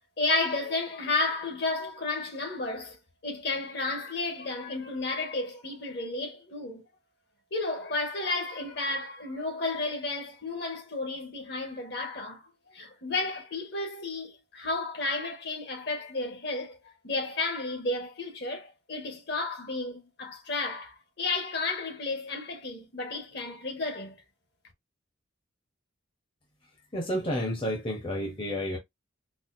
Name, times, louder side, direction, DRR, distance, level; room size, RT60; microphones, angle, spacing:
voice 1, 0.2-3.0 3.2-6.8 7.5-12.4 12.7-16.8 17.0-24.2, left 3 dB, 55° left, 1.1 m, -32 dB
voice 2, 26.9-28.8, equal, 25° left, 0.8 m, -30 dB
4.2 x 2.1 x 2.5 m
head